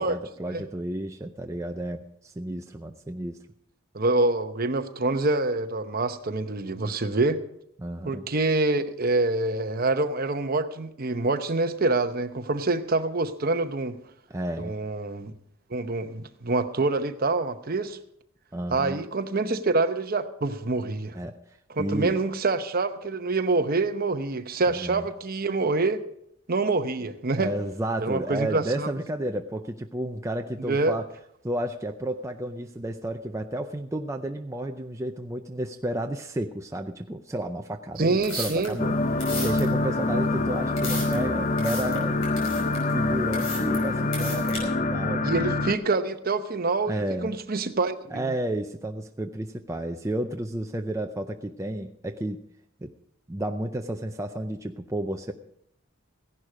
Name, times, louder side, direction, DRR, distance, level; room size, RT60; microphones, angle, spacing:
voice 1, 0.0-3.4 7.8-8.2 14.3-14.7 18.5-19.0 21.1-21.4 21.8-22.2 24.7-25.1 27.4-31.1 31.4-42.2 42.9-45.3 46.9-47.3 48.1-52.4 52.8-52.9 53.3-55.3, right 1 dB, 15° right, 4 dB, 0.5 m, -32 dB
voice 2, 3.9-7.4 8.1-14.0 14.6-15.3 15.7-18.0 18.7-21.1 21.8-26.0 26.5-27.5 28.0-28.9 30.6-30.9 38.0-38.8 45.2-48.3, right 3 dB, 45° right, 9 dB, 0.8 m, -26 dB
sound 1, 37.9-44.6, left 3 dB, 75° left, 5.3 m, -37 dB
sound 2, 38.8-45.7, left 2 dB, 35° left, 0.6 m, -25 dB
15.5 x 11.0 x 5.0 m, 0.73 s
head